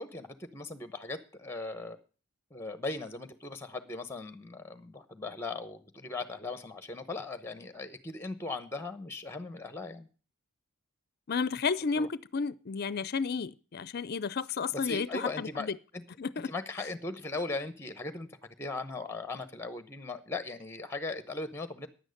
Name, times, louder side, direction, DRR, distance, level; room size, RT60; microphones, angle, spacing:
voice 1, 0.0-2.0 2.5-10.1 12.0-12.1 14.7-16.0 16.4-18.3 18.6-21.9, left 3 dB, 10° left, 0.9 m, -38 dB
voice 2, 11.3-15.8 16.2-16.5, left 5 dB, 45° left, 0.5 m, -32 dB
10.5 x 9.0 x 6.4 m
head